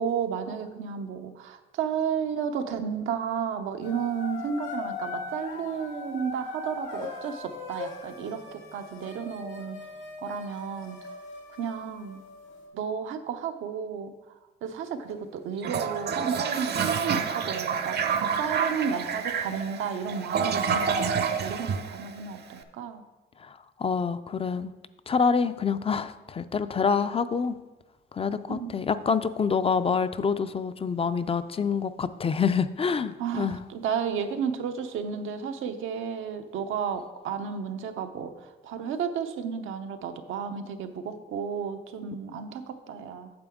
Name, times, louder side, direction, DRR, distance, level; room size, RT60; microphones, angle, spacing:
voice 1, 0.0-9.8 10.2-11.0 11.6-12.2 12.7-18.1 18.4-23.0 28.5-28.7 33.2-43.3, right 7 dB, 85° right, 7 dB, 0.8 m, -32 dB
sound 1, 3.8-12.7, left 4 dB, 85° left, 1.8 m, -40 dB
Toilet flush, 15.6-22.5, right 6 dB, 55° right, 0.7 m, -28 dB
voice 2, 23.4-24.7 25.1-27.6 28.1-33.6, left 5 dB, 30° left, 12 dB, 0.4 m, -27 dB
8.7 x 6.9 x 3.6 m, 1.2 s
cardioid pair, 90°, 20 cm